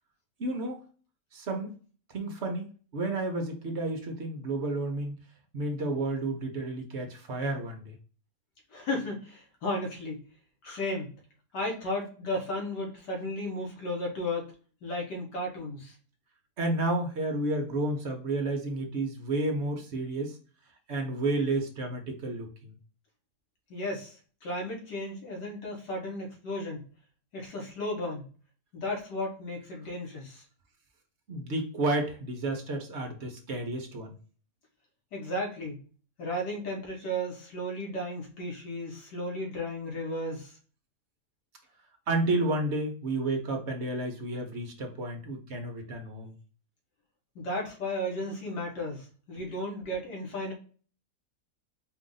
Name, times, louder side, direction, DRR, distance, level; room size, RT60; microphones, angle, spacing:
voice 1, 0.4-0.8 1.3-1.7 2.1-2.7 2.9-5.1 5.5-7.9 16.6-20.3 20.9-22.8 31.3-34.2 42.1-46.3, right 2 dB, 50° right, 3 dB, 1.0 m, -31 dB
voice 2, 8.7-10.2 10.6-11.1 11.5-14.5 14.8-15.9 23.7-24.2 24.4-26.8 27.3-28.3 28.7-30.4 35.1-35.8 36.2-40.6 47.4-50.5, left 1 dB, 85° left, -1 dB, 2.0 m, -34 dB
4.5 x 2.5 x 3.9 m, 0.39 s
omnidirectional pair, 1.8 m